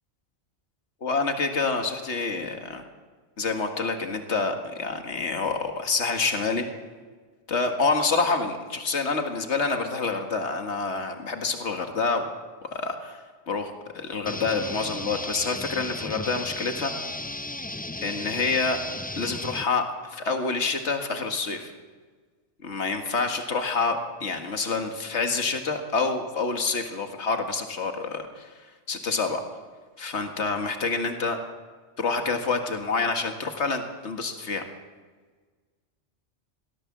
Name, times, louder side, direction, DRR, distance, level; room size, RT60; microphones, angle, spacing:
voice 1, 1.0-2.8 3.4-6.7 7.5-12.3 12.7-16.9 18.0-18.8 19.2-21.7 22.6-28.5 28.9-29.4 30.0-31.4 32.0-34.6, left 4 dB, 70° left, 5 dB, 2.1 m, -27 dB
sound 1, 14.3-19.6, left 2 dB, 15° left, 0.3 m, -35 dB
22.5 x 17.5 x 7.4 m, 1.4 s
omnidirectional pair, 1.2 m